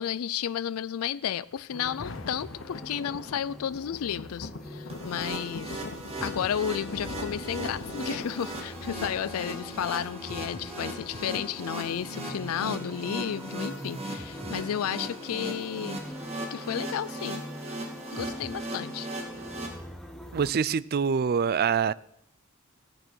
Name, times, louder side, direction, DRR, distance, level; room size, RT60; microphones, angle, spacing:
voice 1, 0.0-5.8 6.2-16.0 16.2-17.4 18.1-19.1, left 9 dB, 80° left, 0.4 m, -32 dB
Thunder, 1.5-12.5 13.1-13.2, left 3 dB, 60° left, 0.9 m, -43 dB
sound 1, 1.7-20.5, equal, ahead, 0.9 m, -43 dB
sound 2, 4.9-19.7, right 1 dB, 30° right, 2.2 m, -38 dB
voice 2, 20.3-21.9, right 6 dB, 45° right, 0.4 m, -25 dB
14.5 x 8.9 x 6.2 m
head